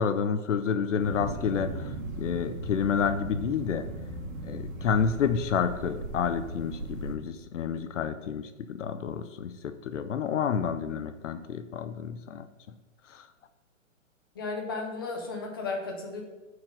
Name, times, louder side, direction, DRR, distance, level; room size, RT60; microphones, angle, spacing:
voice 1, 0.0-1.9 2.2-3.9 4.4-12.5 13.1-13.2, left 7 dB, 65° left, 10 dB, 0.6 m, -29 dB
sound 1, 1.0-7.2, right 2 dB, 75° right, 1.8 m, -37 dB
voice 2, 14.3-16.2, left 3 dB, 20° left, 1 dB, 0.5 m, -34 dB
5.7 x 4.8 x 6.4 m, 1.1 s
hypercardioid pair, 170°, 40 cm